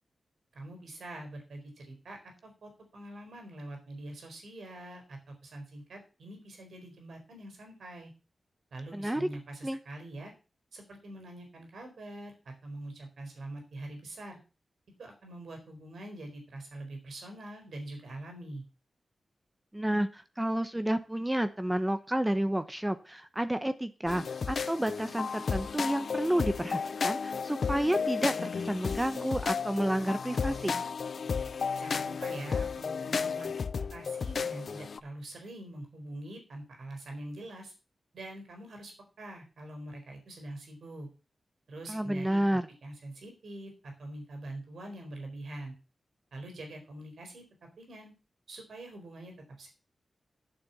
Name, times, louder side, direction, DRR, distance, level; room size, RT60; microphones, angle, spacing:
voice 1, 0.5-8.1 8.7-10.3 10.7-14.4 15.0-18.6 31.8-37.7 38.1-41.1 41.7-45.7 46.3-48.1 48.5-49.7, right 1 dB, 85° right, 3 dB, 4.4 m, -44 dB
voice 2, 8.9-9.3 9.6-9.8 19.7-30.8 41.9-42.7, right 1 dB, 10° right, 10 dB, 1.0 m, -30 dB
sound 1, 24.1-35.0, left 5 dB, 70° left, 0.5 m, -33 dB
8.9 x 6.9 x 6.9 m, 0.33 s
cardioid pair, 75°, 0 cm